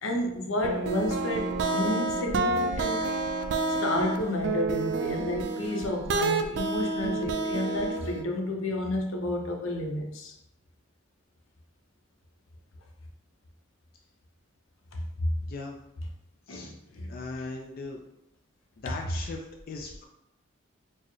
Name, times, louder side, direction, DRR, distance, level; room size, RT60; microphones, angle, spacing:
voice 1, 0.0-3.0 3.8-10.3 15.2-15.3 16.5-17.1, left 1 dB, 85° left, 2 dB, 0.6 m, -31 dB
sound 1, 0.6-8.2, right 3 dB, 60° right, 0.3 m, -29 dB
voice 2, 17.1-18.0 18.8-20.0, left 3 dB, 45° left, 1 dB, 0.3 m, -38 dB
4.4 x 2.1 x 3.0 m, 0.84 s
head